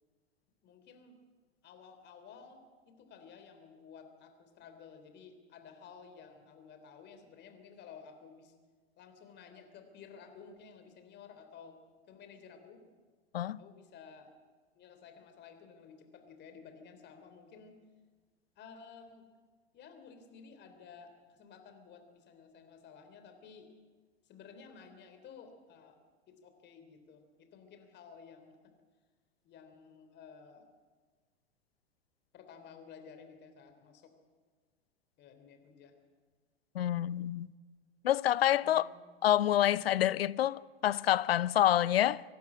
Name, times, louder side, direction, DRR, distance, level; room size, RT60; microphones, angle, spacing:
voice 1, 0.6-1.2 1.6-8.5 9.0-11.8 12.1-12.8 13.6-14.3 14.8-17.8 18.6-19.3 19.7-23.7 24.3-26.0 26.3-28.6 29.4-30.7 32.3-34.1 35.2-35.9 38.6-38.9, left 6 dB, 35° left, 3.5 m, -54 dB
voice 2, 36.7-37.5 38.0-38.9 39.2-42.2, left 12 dB, 65° left, 0.7 m, -27 dB
24.5 x 12.0 x 9.7 m
figure-of-eight pair, 90°, 32 cm